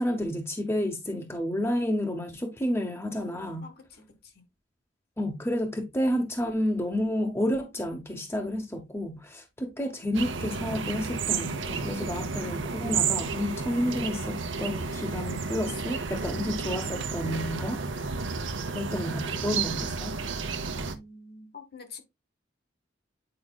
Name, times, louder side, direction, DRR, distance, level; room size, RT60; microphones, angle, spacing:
voice 1, 0.0-3.6 5.2-18.2 18.7-20.2, equal, 15° left, 0.8 m, -30 dB
voice 2, 3.6-4.5 20.8-22.0, left 4 dB, 55° left, 1.4 m, -47 dB
sound 1, 10.1-21.0, right 5 dB, 85° right, 0.9 m, -32 dB
8.7 x 4.9 x 2.3 m
head